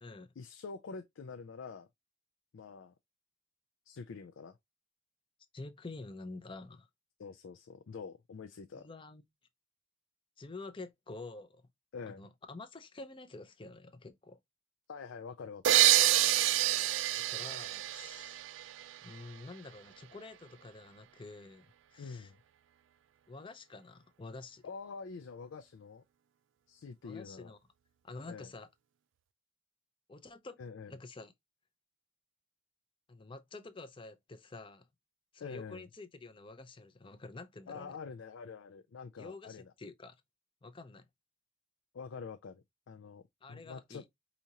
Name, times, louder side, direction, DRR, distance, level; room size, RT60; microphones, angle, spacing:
voice 1, 0.4-1.9 2.5-2.9 3.9-4.6 7.2-8.9 11.9-12.3 14.9-15.8 22.0-22.4 24.6-26.0 26.7-27.5 28.3-28.5 30.6-30.9 35.4-35.9 37.7-39.7 41.9-43.2 43.5-44.1, left 5 dB, 80° left, 0.4 m, -46 dB
voice 2, 5.5-6.9 8.7-9.2 10.4-11.6 12.1-14.4 17.1-18.4 19.0-22.3 23.3-24.6 27.0-27.6 28.0-28.7 30.1-30.6 30.9-31.3 33.1-34.9 35.3-38.0 39.2-40.1 40.6-41.1 43.4-44.0, left 3 dB, 25° left, 0.5 m, -48 dB
sound 1, 15.6-19.2, right 14 dB, 70° right, 0.3 m, -27 dB
4.9 x 2.8 x 2.8 m
head